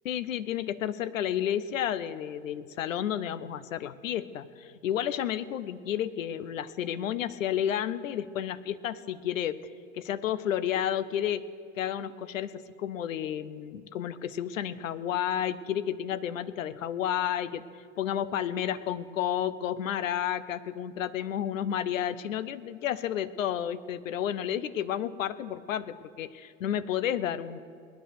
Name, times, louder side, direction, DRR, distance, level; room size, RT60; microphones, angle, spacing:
voice 1, 0.0-9.6 9.9-11.4 11.8-17.6 18.0-27.6, left 10 dB, 80° left, 15 dB, 0.8 m, -31 dB
20.0 x 10.5 x 6.6 m, 2.3 s
hypercardioid pair, 85°, 39 cm